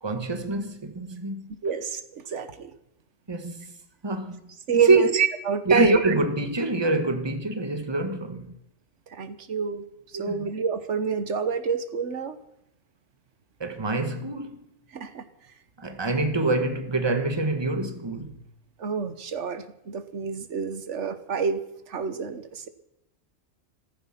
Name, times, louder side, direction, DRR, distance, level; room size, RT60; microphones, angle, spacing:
voice 1, 0.0-1.5 3.3-3.6 4.0-4.4 4.7-5.2 5.7-8.5 10.1-10.5 13.6-14.6 15.8-18.4, right 2 dB, 20° right, 1.4 m, -25 dB
voice 2, 1.6-2.7 4.7-6.0 9.1-9.8 10.1-12.4 14.9-15.2 18.8-21.6 21.9-22.7, right 6 dB, 85° right, 1.5 m, -28 dB
15.0 x 15.0 x 5.9 m
omnidirectional pair, 1.2 m